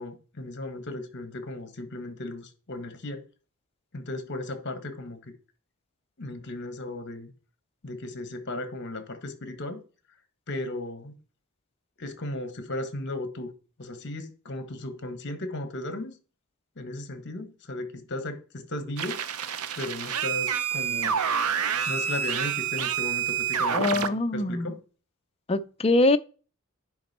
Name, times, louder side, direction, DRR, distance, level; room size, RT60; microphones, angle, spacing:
voice 1, 0.0-3.3 3.9-5.3 6.2-7.3 7.8-9.8 10.5-11.1 12.0-13.5 13.8-16.1 16.7-19.2 19.8-21.2 21.9-24.8, left 2 dB, 50° left, 1.5 m, -36 dB
sound 1, 19.0-24.1, right 8 dB, 75° right, 0.6 m, -28 dB
voice 2, 23.7-24.7 25.5-26.2, left 2 dB, 25° left, 0.5 m, -23 dB
10.0 x 5.2 x 4.3 m
head